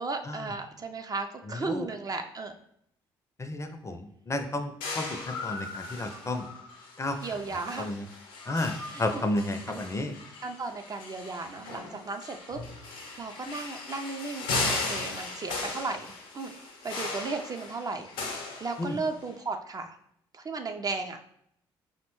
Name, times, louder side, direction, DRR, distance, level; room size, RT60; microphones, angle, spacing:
voice 1, 0.0-2.5 7.2-7.9 8.9-9.2 9.7-9.8 10.4-16.5 16.8-18.1 18.4-20.0 20.3-21.3, right 3 dB, 30° right, 5 dB, 0.4 m, -35 dB
voice 2, 1.5-1.9 3.4-6.4 7.0-7.3 7.8-8.0 8.5-10.1 18.8-19.0, left 2 dB, 25° left, 7 dB, 0.5 m, -32 dB
sound 1, 4.8-19.3, left 3 dB, 80° left, 0.6 m, -37 dB
5.3 x 2.1 x 3.0 m, 0.73 s
hypercardioid pair, 50°, 12 cm